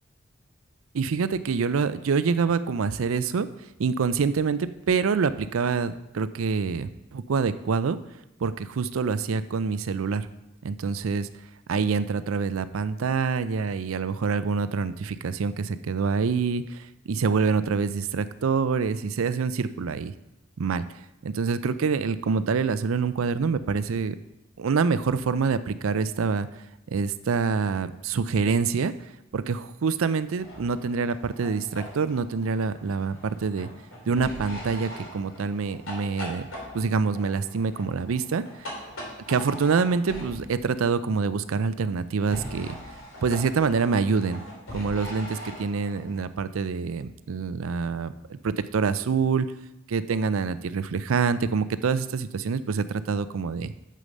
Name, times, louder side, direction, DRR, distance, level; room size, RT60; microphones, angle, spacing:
voice 1, 0.9-3.5 3.8-8.0 8.4-10.3 10.6-11.3 11.7-20.1 20.6-20.8 21.2-24.2 24.6-28.9 29.3-33.7 34.1-36.5 36.7-38.7 39.3-42.8 43.2-44.4 44.7-49.5 49.9-53.7, right 5 dB, 90° right, 14 dB, 0.5 m, -26 dB
sound 1, 30.4-40.7 42.2-46.2, equal, 85° left, 2.6 m, -41 dB
7.7 x 6.5 x 5.2 m, 0.90 s
head